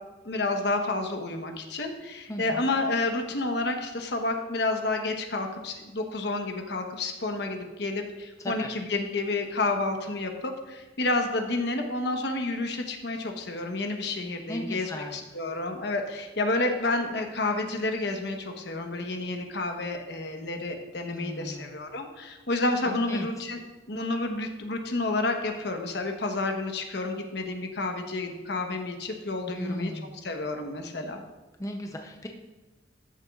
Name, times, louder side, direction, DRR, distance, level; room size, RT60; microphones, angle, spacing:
voice 1, 0.2-23.6 23.9-29.9 30.2-31.2, left 2 dB, 60° left, 4 dB, 1.0 m, -30 dB
voice 2, 2.3-2.7 8.4-8.7 14.5-15.2 21.1-21.8 22.8-23.3 29.5-30.2 31.6-32.3, left 1 dB, 15° left, 2 dB, 0.6 m, -36 dB
13.5 x 7.0 x 2.4 m, 1.1 s
head